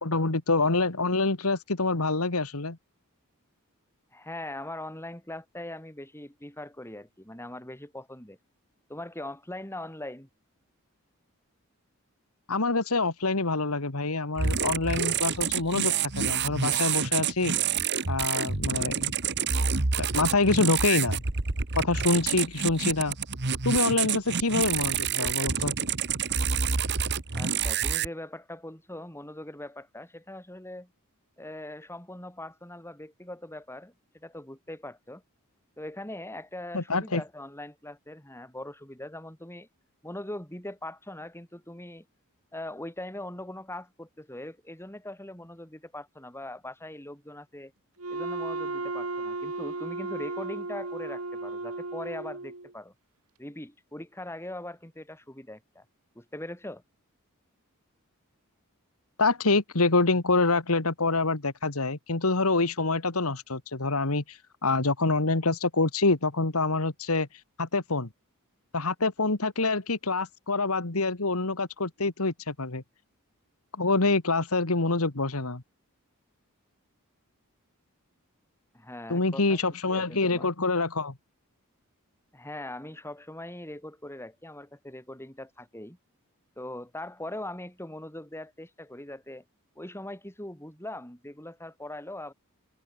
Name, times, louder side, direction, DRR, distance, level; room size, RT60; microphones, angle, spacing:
voice 1, 0.0-2.8 12.5-17.5 18.1-19.1 20.0-21.2 21.8-23.2 23.6-25.7 36.7-37.2 59.2-67.3 67.6-68.1 68.7-72.8 73.8-75.6 79.1-81.1, left 3 dB, 75° left, 2.0 m, -26 dB
voice 2, 4.1-8.4 8.9-10.3 27.3-30.9 31.4-35.2 35.8-39.7 40.0-42.1 42.5-47.7 48.1-52.9 53.4-55.8 56.2-56.8 78.7-79.6 79.9-80.5 82.3-86.0 86.6-89.4 89.8-92.3, left 1 dB, 10° left, 7.4 m, -41 dB
sound 1, 14.4-28.1, right 6 dB, 55° right, 1.5 m, -28 dB
Wind instrument woodwind instrument, 48.0-52.7, right 2 dB, 80° right, 4.0 m, -34 dB
head